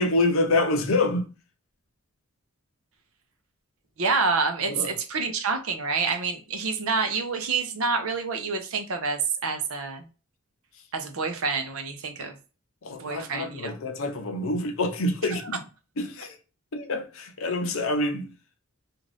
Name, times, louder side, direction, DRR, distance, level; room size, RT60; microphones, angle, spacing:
voice 1, 0.0-1.3 4.7-4.9 12.8-15.6 16.0-16.4 16.7-18.3, left 2 dB, 65° left, 0.6 m, -26 dB
voice 2, 4.0-10.1 10.9-12.4 13.0-13.7 15.3-15.4, right 4 dB, 70° right, 0.6 m, -27 dB
2.6 x 2.4 x 3.2 m
head